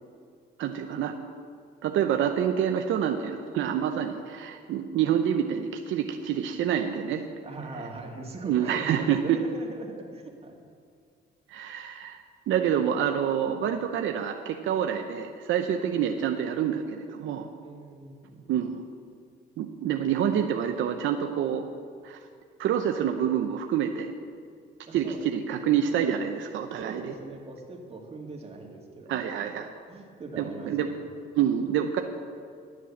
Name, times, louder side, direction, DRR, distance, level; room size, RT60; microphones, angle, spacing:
voice 1, 0.6-1.1 1.8-7.2 8.4-9.4 11.5-17.5 18.5-18.8 19.6-21.7 22.0-22.2 22.6-24.1 24.9-27.1 29.1-29.7 30.4-30.9 31.4-32.0, right 9 dB, 80° right, 5 dB, 0.7 m, -27 dB
voice 2, 7.4-10.6 17.6-18.4 24.9-25.3 26.8-29.2 29.9-31.0, right 3 dB, 30° right, 0 dB, 2.2 m, -41 dB
12.0 x 7.4 x 7.1 m, 2.2 s
cardioid pair, 90°, 20 cm